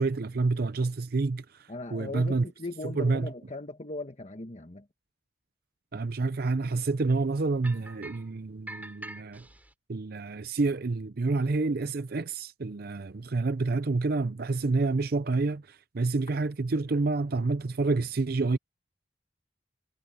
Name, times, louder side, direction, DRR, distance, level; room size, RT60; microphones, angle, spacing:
voice 1, 0.0-2.4 2.8-3.3 5.9-9.4 9.9-18.6, right 3 dB, 55° right, 0.6 m, -28 dB
voice 2, 1.7-4.9, left 2 dB, 35° left, 1.3 m, -38 dB
sound 1, 7.6-8.3 8.7-9.7, right 1 dB, 10° right, 3.2 m, -44 dB
head